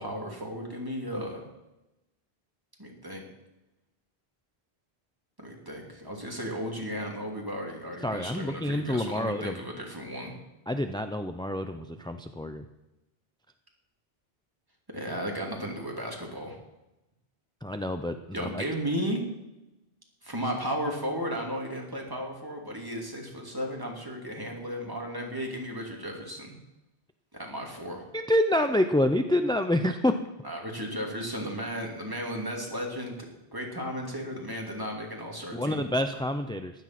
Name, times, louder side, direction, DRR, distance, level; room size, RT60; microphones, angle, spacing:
voice 1, 0.0-1.4 2.8-3.2 5.4-10.3 14.9-16.6 18.3-19.2 20.2-26.5 27.3-28.0 30.4-33.1 33.5-35.8, equal, 20° right, 0 dB, 2.8 m, -34 dB
voice 2, 8.0-9.6 10.7-12.6 17.6-18.6 28.1-30.2 35.5-36.7, left 1 dB, 5° left, 7 dB, 0.4 m, -27 dB
15.0 x 11.0 x 6.0 m, 0.97 s
omnidirectional pair, 1.1 m